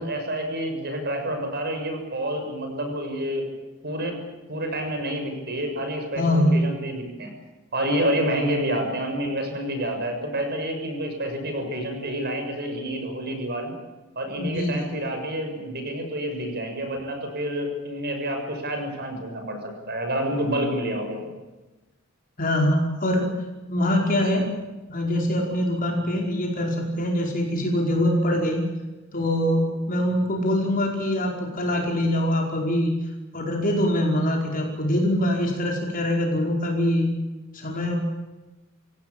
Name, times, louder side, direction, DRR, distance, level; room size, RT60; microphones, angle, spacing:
voice 1, 0.0-3.5 3.8-4.2 4.5-7.3 7.7-13.7 14.1-21.3 26.0-26.1, right 1 dB, 50° right, 5 dB, 6.9 m, -28 dB
voice 2, 6.2-6.6 14.4-14.8 22.4-23.3 23.7-24.5 24.9-28.6 29.1-32.9 33.3-37.1 37.5-37.9, left 1 dB, 40° left, 0 dB, 5.1 m, -23 dB
28.0 x 17.0 x 8.7 m, 1.1 s
head